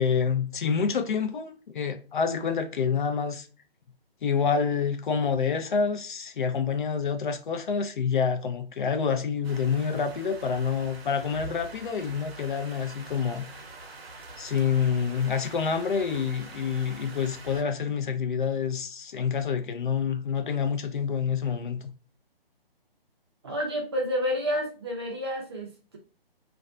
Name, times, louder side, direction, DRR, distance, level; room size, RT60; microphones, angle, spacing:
voice 1, 0.0-3.5 4.2-13.4 14.4-21.8, left 6 dB, 55° left, 0.5 m, -27 dB
sound 1, 9.4-17.6, right 2 dB, 85° right, 0.7 m, -45 dB
voice 2, 23.4-26.0, equal, 25° right, 0.5 m, -30 dB
2.4 x 2.2 x 2.4 m
hypercardioid pair, 155°, 30 cm